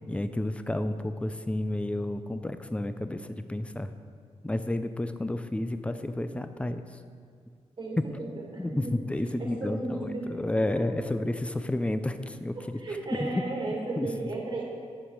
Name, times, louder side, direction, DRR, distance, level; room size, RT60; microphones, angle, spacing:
voice 1, 0.1-3.9 4.4-7.0 8.6-12.8 13.1-13.4 14.0-14.1, left 1 dB, 10° left, 10 dB, 0.5 m, -31 dB
voice 2, 7.8-9.1 9.4-10.3 10.6-11.1 12.6-14.6, right 2 dB, 40° right, -3 dB, 2.0 m, -35 dB
8.9 x 7.0 x 4.7 m, 2.1 s
cardioid pair, 85°, 12 cm